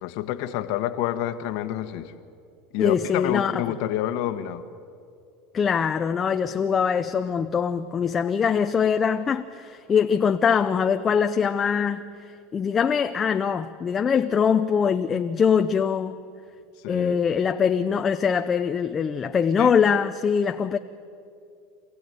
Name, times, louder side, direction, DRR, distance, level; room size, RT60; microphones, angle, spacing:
voice 1, 0.0-2.1 2.7-4.6 16.8-17.2 19.6-19.7, left 12 dB, 65° left, 8 dB, 1.4 m, -28 dB
voice 2, 2.8-3.6 5.5-12.0 12.5-16.2 16.9-20.8, left 7 dB, 25° left, 6 dB, 0.7 m, -23 dB
27.5 x 15.5 x 9.4 m, 2.4 s
supercardioid pair, 125°, 0 cm